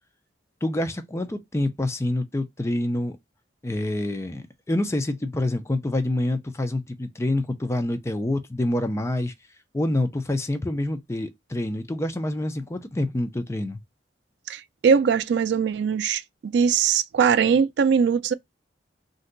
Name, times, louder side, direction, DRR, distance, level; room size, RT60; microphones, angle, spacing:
voice 1, 0.6-3.2 3.6-9.3 9.7-13.8, left 1 dB, 15° left, 0.4 m, -27 dB
voice 2, 14.5-18.3, right 6 dB, 65° right, 0.3 m, -21 dB
2.6 x 2.2 x 3.7 m
head